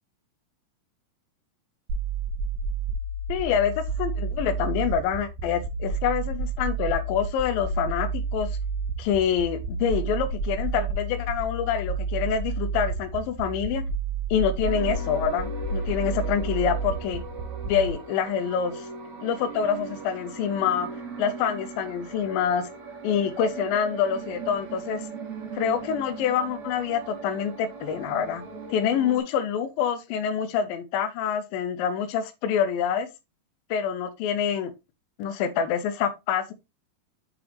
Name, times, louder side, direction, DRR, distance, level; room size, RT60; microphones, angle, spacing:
sound 1, 1.9-17.9, right 4 dB, 75° right, 2.9 m, -30 dB
voice 1, 3.3-8.5 9.0-13.8 14.3-17.2 17.7-18.9 19.2-20.9 21.2-22.7 23.0-25.1 25.5-28.4 28.7-33.1 33.7-34.7 35.2-36.5, left 8 dB, 75° left, 2.4 m, -26 dB
ambient dream, 14.6-29.2, right 4 dB, 50° right, 2.0 m, -39 dB
6.8 x 6.1 x 3.2 m
omnidirectional pair, 4.7 m